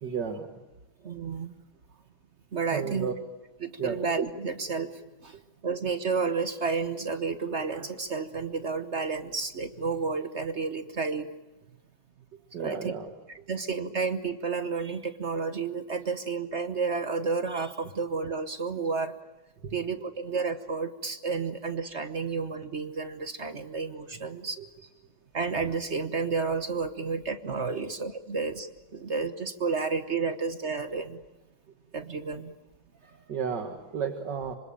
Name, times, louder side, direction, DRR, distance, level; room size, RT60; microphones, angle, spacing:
voice 1, 0.0-0.5 2.7-3.1 3.8-4.0 12.3-13.1 13.5-13.6 18.8-18.9 19.6-19.9 24.6-24.9 27.8-27.9 33.0-34.6, right 6 dB, 60° right, 5 dB, 2.3 m, -34 dB
voice 2, 1.0-1.5 2.5-3.1 3.6-11.3 12.6-12.9 13.3-19.1 19.7-24.6 25.3-31.2 31.9-32.5, right 4 dB, 40° right, 10 dB, 1.1 m, -31 dB
26.0 x 25.5 x 8.9 m, 0.99 s
omnidirectional pair, 2.1 m